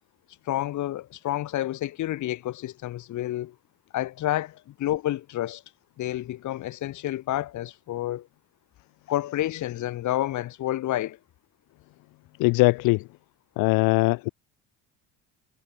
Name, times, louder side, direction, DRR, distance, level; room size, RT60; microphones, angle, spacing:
voice 1, 0.4-3.5 3.9-5.6 6.0-8.3 9.1-11.2, left 14 dB, 55° left, 6.9 m, -29 dB
voice 2, 12.4-13.0 13.6-14.3, left 24 dB, 70° left, 0.7 m, -21 dB
cardioid pair, 145°, 35 cm